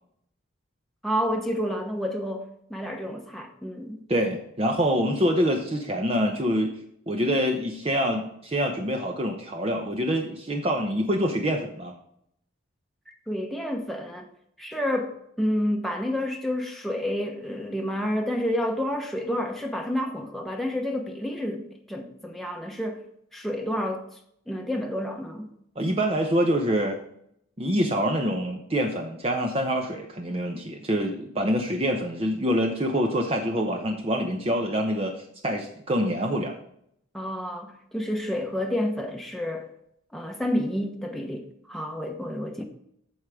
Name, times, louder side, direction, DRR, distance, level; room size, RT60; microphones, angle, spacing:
voice 1, 1.0-4.0 13.1-14.3 14.6-23.0 23.3-24.0 24.5-25.5 37.1-39.7 40.1-42.6, equal, ahead, 1.0 m, -29 dB
voice 2, 4.1-6.7 7.1-11.9 25.8-27.0 27.6-35.1 35.4-36.6, equal, 30° right, 0.8 m, -25 dB
14.5 x 4.8 x 3.6 m
head